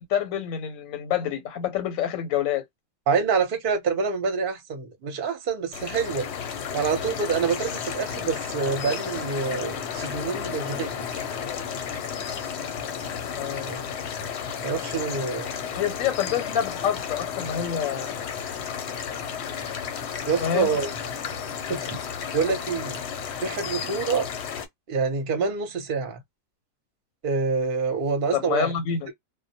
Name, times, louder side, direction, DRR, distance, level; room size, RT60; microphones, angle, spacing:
voice 1, 0.1-2.6 13.4-13.7 15.8-18.2 20.4-20.8 28.3-29.1, left 9 dB, 90° left, 1.0 m, -27 dB
voice 2, 3.1-6.3 6.7-11.3 13.7-13.8 14.6-15.8 20.3-20.9 21.7-22.0 22.3-23.0 23.4-24.3 24.9-26.2 27.2-28.7, right 5 dB, 50° right, 0.8 m, -26 dB
sound 1, 5.7-24.7, left 7 dB, 65° left, 0.8 m, -33 dB
2.2 x 2.1 x 2.7 m
omnidirectional pair, 1.4 m